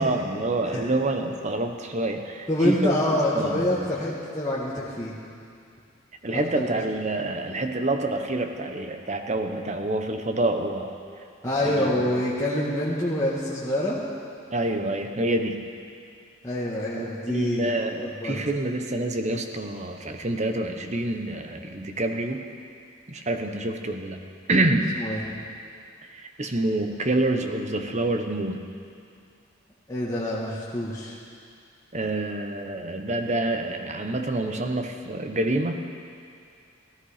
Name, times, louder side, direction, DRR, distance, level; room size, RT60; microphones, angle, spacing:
voice 1, 0.0-3.0 3.3-3.7 6.2-10.9 11.6-12.1 14.5-15.7 17.0-22.4 23.1-24.2 24.5-24.9 26.1-28.6 31.9-35.8, right 2 dB, 35° right, 5 dB, 0.9 m, -27 dB
voice 2, 2.5-5.2 6.5-6.7 11.4-14.0 16.4-17.7 18.0-18.4 25.0-25.3 29.9-31.2, left 1 dB, 15° left, -7 dB, 1.4 m, -26 dB
16.0 x 14.0 x 5.0 m, 2.3 s
head